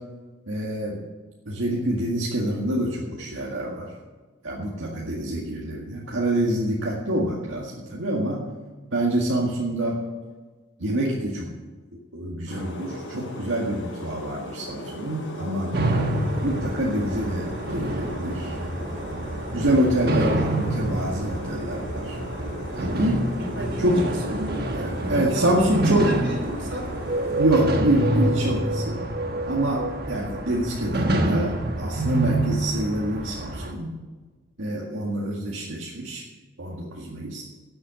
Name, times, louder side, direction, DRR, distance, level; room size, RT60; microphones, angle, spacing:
voice 1, 0.5-1.0 1.5-3.9 4.4-8.4 8.9-10.0 10.8-11.5 12.1-15.7 16.4-18.5 19.5-22.2 22.7-23.3 23.8-24.3 24.7-26.2 27.3-29.0 29.4-33.9 34.6-36.2 36.6-37.4, right 1 dB, 85° right, -4 dB, 2.0 m, -26 dB
sound 1, 12.5-27.4, equal, 90° left, 3.8 m, -38 dB
sound 2, 15.7-33.7, right 1 dB, 50° right, 1.4 m, -28 dB
voice 2, 23.4-24.8 25.1-26.9, equal, 65° right, 1 dB, 3.6 m, -32 dB
sound 3, 26.9-31.5, right 2 dB, 35° right, 0.5 m, -30 dB
12.0 x 7.9 x 7.8 m, 1.4 s
head